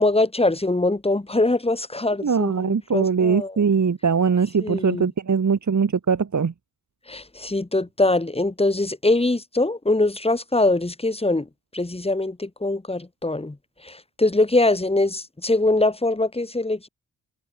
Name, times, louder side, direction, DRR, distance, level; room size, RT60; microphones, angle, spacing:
voice 1, 0.0-3.5 4.6-5.1 7.1-13.6 13.8-16.9, left 2 dB, 15° left, 3.8 m, -23 dB
voice 2, 2.2-6.5, right 6 dB, 55° right, 6.1 m, -21 dB
cardioid pair, 80°, 35 cm